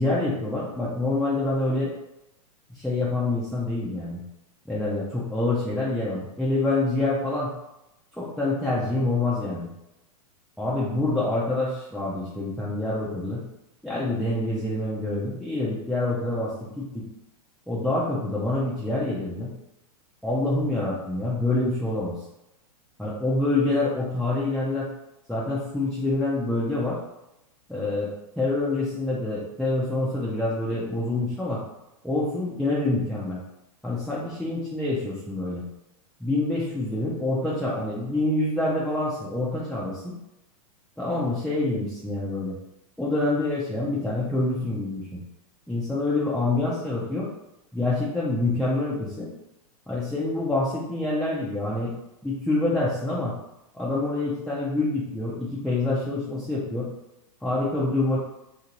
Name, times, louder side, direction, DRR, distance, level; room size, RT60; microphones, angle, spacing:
voice 1, 0.0-1.9 2.7-4.2 4.7-7.5 8.1-9.7 10.6-13.4 13.8-17.1 17.7-19.5 20.2-22.1 23.0-24.9 25.3-27.0 27.7-31.6 32.0-33.4 33.8-35.6 36.2-40.1 41.0-42.6 43.0-45.2 45.7-47.3 47.7-49.3 49.9-51.9 52.2-53.3 53.7-56.9 57.4-58.2, left 2 dB, ahead, -7 dB, 0.4 m, -26 dB
2.8 x 2.6 x 2.8 m, 0.91 s
hypercardioid pair, 125°, 19 cm